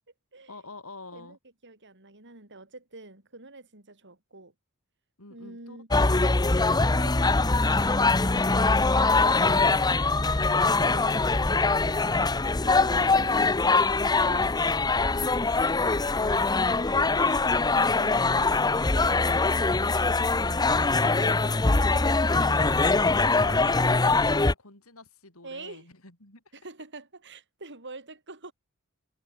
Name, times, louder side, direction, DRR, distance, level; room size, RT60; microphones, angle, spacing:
voice 1, 0.5-1.4 5.2-5.8 15.1-15.3 20.3-26.4, left 3 dB, 70° left, 6.3 m, -47 dB
voice 2, 1.6-4.5 5.3-5.9 6.9-7.1 8.9-9.9 10.7-14.6 17.9-20.6 21.8-22.2 25.4-25.9 26.5-28.5, right 2 dB, 55° right, 5.4 m, -47 dB
sound 1, 5.9-24.5, left 3 dB, 20° left, 0.7 m, -23 dB
head